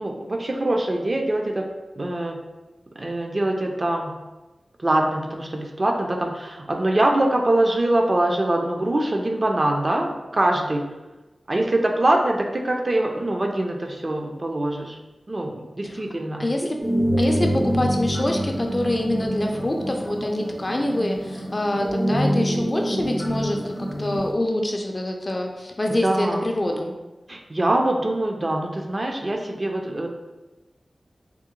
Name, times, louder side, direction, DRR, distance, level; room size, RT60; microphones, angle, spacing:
voice 1, 0.0-1.6 2.0-2.4 3.0-4.1 4.8-10.9 11.5-15.0 15.3-16.7 25.9-26.5 27.3-30.1, right 1 dB, 40° right, 2 dB, 0.4 m, -23 dB
voice 2, 16.4-16.8 17.2-26.9, left 1 dB, 35° left, 2 dB, 0.4 m, -25 dB
sound 1, 16.8-24.3, equal, 70° right, 1.4 m, -26 dB
3.6 x 2.1 x 2.9 m, 1.1 s
wide cardioid pair, 70°, 0 cm